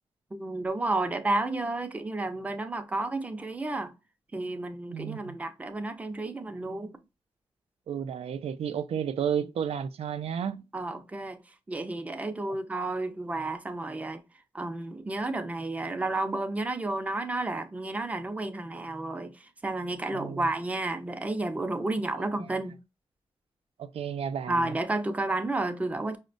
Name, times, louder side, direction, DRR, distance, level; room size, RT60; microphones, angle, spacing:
voice 1, 0.3-3.9 4.3-7.0 10.7-11.4 11.7-14.2 14.5-19.3 19.6-22.8 24.5-26.2, right 2 dB, 15° right, 0.4 m, -31 dB
voice 2, 4.9-5.4 7.9-10.6 20.1-20.5 22.2-22.3 23.8-24.7, right 8 dB, 85° right, 0.4 m, -32 dB
5.0 x 2.1 x 2.5 m
wide cardioid pair, 135°, 10 cm